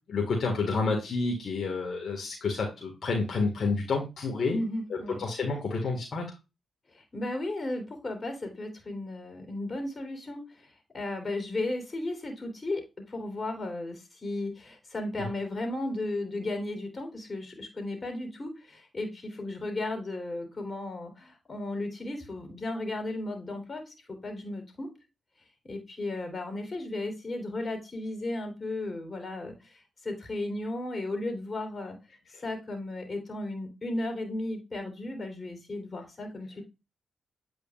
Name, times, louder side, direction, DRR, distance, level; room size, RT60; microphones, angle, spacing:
voice 1, 0.1-4.6 5.2-6.2, left 3 dB, 65° left, 0 dB, 1.7 m, -29 dB
voice 2, 4.5-5.2 6.9-12.8 13.1-24.9 25.6-32.0 32.3-36.6, left 2 dB, 35° left, 4 dB, 3.2 m, -35 dB
8.6 x 4.9 x 2.4 m, 0.26 s
supercardioid pair, 55°, 0 cm